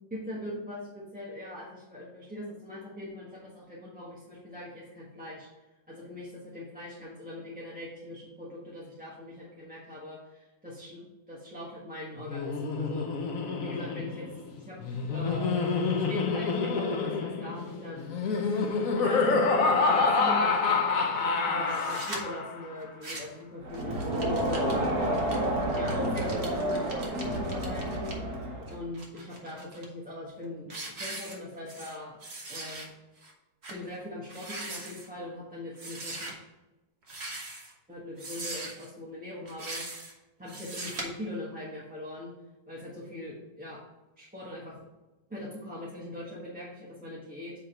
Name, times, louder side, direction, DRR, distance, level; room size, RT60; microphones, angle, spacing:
voice 1, 0.1-5.5 5.9-13.2 13.6-14.3 14.6-14.8 15.1-18.1 18.9-25.4 25.7-28.2 28.7-32.2 32.5-32.9 33.7-36.3 37.9-42.3 42.7-43.8 44.2-44.8 45.3-47.5, left 1 dB, 5° right, -7 dB, 1.1 m, -41 dB
Laughter, 12.2-22.7, left 4 dB, 60° left, 1.0 m, -27 dB
sound 1, 21.7-22.2 22.8-23.4 23.7-28.1 28.7-29.9 30.3-30.4 30.7-32.0 32.2-32.9 33.2-33.3 33.6-33.8 34.2-35.1 35.8-36.3 37.0-37.7 38.2-38.9 39.5-40.1 40.5-41.0, right 2 dB, 40° right, 1.3 m, -41 dB
Crowd, 23.6-28.8, right 1 dB, 60° right, 1.7 m, -30 dB
8.6 x 3.6 x 4.5 m, 1.0 s
omnidirectional pair, 1.9 m